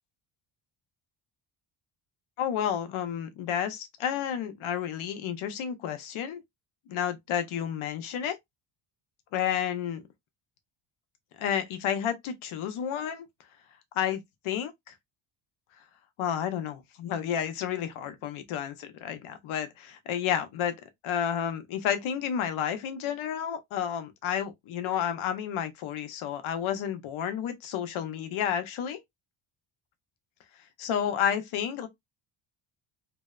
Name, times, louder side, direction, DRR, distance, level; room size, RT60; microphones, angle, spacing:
voice 1, 2.4-6.4 6.9-8.4 9.3-10.0 11.4-13.3 14.0-14.9 16.2-20.7 21.0-29.0 30.8-31.9, left 9 dB, 75° left, 0.7 m, -31 dB
2.7 x 2.0 x 2.3 m
cardioid pair, 125°, 50 cm